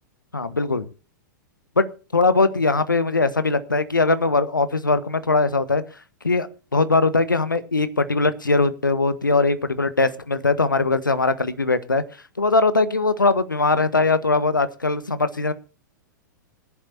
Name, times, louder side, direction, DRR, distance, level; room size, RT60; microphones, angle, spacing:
voice 1, 0.3-0.9 1.8-5.8 6.2-12.0 12.4-15.5, left 3 dB, 85° left, 14 dB, 1.3 m, -21 dB
21.5 x 11.0 x 2.8 m, 0.33 s
figure-of-eight pair, 100°, 10 cm